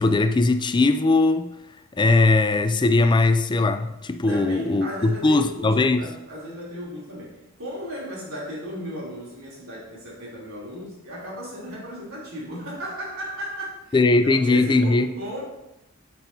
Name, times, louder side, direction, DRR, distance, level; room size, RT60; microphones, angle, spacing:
voice 1, 0.0-1.5 2.0-6.0 13.9-15.1, left 3 dB, 20° left, 10 dB, 0.4 m, -19 dB
voice 2, 4.2-15.4, equal, 85° right, -5 dB, 3.2 m, -36 dB
8.7 x 7.6 x 2.8 m, 0.89 s
head